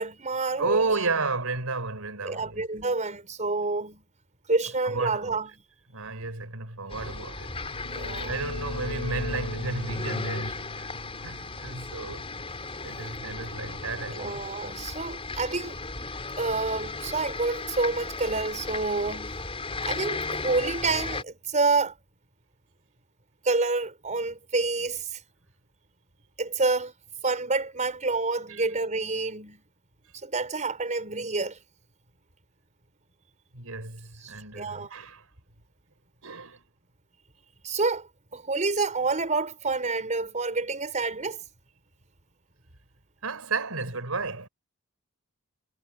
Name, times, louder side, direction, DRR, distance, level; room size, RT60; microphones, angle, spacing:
voice 1, 0.0-0.8 2.2-4.0 4.5-5.5 7.9-8.3 14.2-15.8 16.4-19.4 19.8-21.9 23.4-25.2 26.4-26.9 27.2-29.6 30.2-31.6 34.2-34.9 37.6-41.4, right 3 dB, 35° right, 5.2 m, -28 dB
voice 2, 0.6-2.6 4.8-5.4 5.9-7.6 7.9-10.9 11.2-12.3 12.8-14.5 28.5-28.7 33.5-35.3 36.2-36.6 43.2-44.5, right 3 dB, 80° right, 4.4 m, -32 dB
sound 1, 6.9-21.2, left 3 dB, 25° left, 5.8 m, -36 dB
sound 2, 7.5-13.1, left 1 dB, 75° left, 5.3 m, -37 dB
head